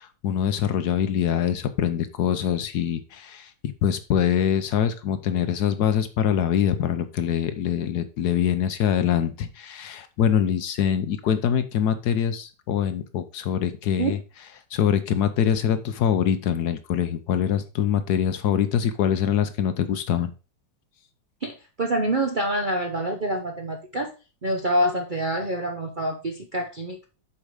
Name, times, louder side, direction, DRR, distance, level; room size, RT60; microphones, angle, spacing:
voice 1, 0.0-14.2 14.7-20.3, left 9 dB, 65° left, 10 dB, 1.2 m, -24 dB
voice 2, 21.4-24.1 24.4-27.1, right 1 dB, 45° right, 1 dB, 0.7 m, -26 dB
7.3 x 4.8 x 5.0 m, 0.32 s
omnidirectional pair, 1.9 m